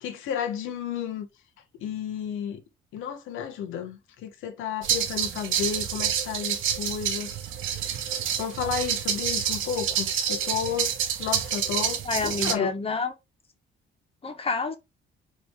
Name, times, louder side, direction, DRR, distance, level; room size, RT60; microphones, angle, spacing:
voice 1, 0.0-1.3 1.8-2.6 2.9-7.3 7.7-7.9 8.4-10.9 11.2-12.7, left 8 dB, 90° left, 1.0 m, -32 dB
sound 1, 4.8-12.5, right 8 dB, 80° right, 0.8 m, -28 dB
voice 2, 12.0-13.1 14.2-14.8, left 4 dB, 30° left, 1.1 m, -28 dB
4.1 x 2.7 x 3.4 m
cardioid pair, 90°, 20 cm